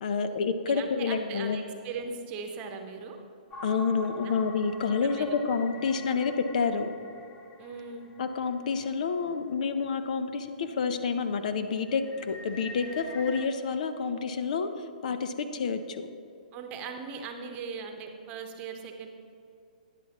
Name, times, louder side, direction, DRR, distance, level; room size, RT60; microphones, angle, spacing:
voice 1, 0.0-1.6 3.6-6.9 8.2-14.7 15.0-16.1, left 5 dB, 60° left, 9 dB, 0.7 m, -29 dB
voice 2, 0.7-3.2 4.2-4.4 5.0-5.4 7.6-8.1 16.5-19.1, right 5 dB, 30° right, 4 dB, 1.0 m, -39 dB
sound 1, 3.5-9.3 9.8-9.9 10.4-10.7 11.1-13.5, left 2 dB, 20° left, 0.6 m, -46 dB
12.0 x 10.0 x 3.0 m, 2.6 s
hypercardioid pair, 145°, 5 cm